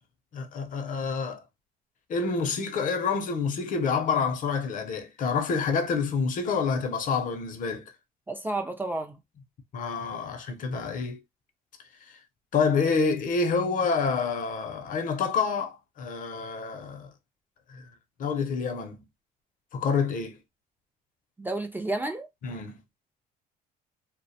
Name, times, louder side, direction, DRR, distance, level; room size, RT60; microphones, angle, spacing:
voice 1, 0.3-1.4 2.1-7.8 9.7-11.2 12.5-17.1 17.7-17.8 18.2-19.0 19.7-20.4 22.4-22.8, left 5 dB, 50° left, 0.6 m, -28 dB
voice 2, 8.3-9.2 21.4-22.3, right 2 dB, 10° right, 0.3 m, -31 dB
2.3 x 2.1 x 2.7 m
cardioid pair, 110°, 17 cm